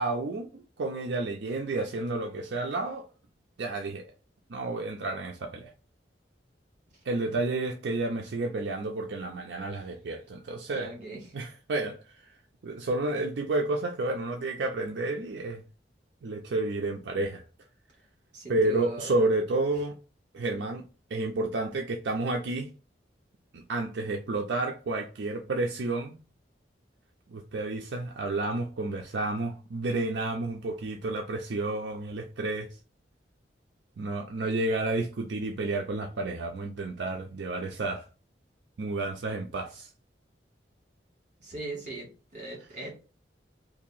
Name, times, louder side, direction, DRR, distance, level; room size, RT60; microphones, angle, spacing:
voice 1, 0.0-3.1 3.6-4.1 4.5-5.7 7.1-10.9 11.3-12.3 12.6-15.6 16.2-17.4 18.5-20.0 20.3-20.8 21.1-22.7 23.5-26.2 27.3-32.7 34.0-38.1 38.8-39.9, right 2 dB, 75° right, 0.5 m, -31 dB
voice 2, 10.7-11.2 18.3-19.2 41.4-42.1 42.3-42.9, right 2 dB, 45° right, 1.6 m, -39 dB
2.8 x 2.6 x 4.0 m
head